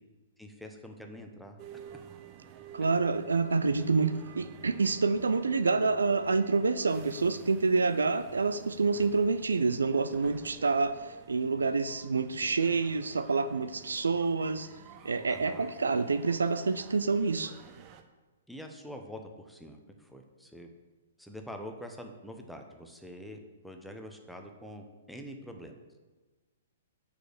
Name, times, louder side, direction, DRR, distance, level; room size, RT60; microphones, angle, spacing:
voice 1, 0.4-1.6 15.3-15.7 18.5-20.7 21.2-23.4 23.6-25.8, equal, ahead, 3 dB, 0.8 m, -45 dB
sound 1, 1.6-18.0, right 8 dB, 30° right, 0.6 m, -51 dB
voice 2, 2.7-14.7 15.0-17.5, right 4 dB, 70° right, 12 dB, 0.4 m, -27 dB
6.2 x 4.9 x 6.7 m, 1.2 s
figure-of-eight pair, 115°, 0 cm